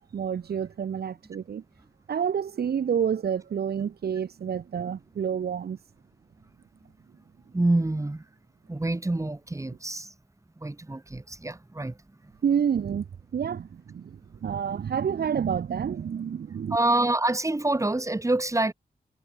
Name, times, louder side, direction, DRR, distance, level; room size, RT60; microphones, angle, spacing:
voice 1, 0.1-1.6 2.1-5.8 12.4-13.1 13.3-16.8, right 7 dB, 85° right, 0.8 m, -28 dB
voice 2, 7.5-8.2 8.7-10.1 10.6-12.0 16.7-18.7, right 2 dB, 20° right, 2.1 m, -26 dB
wide cardioid pair, 100°, 16 cm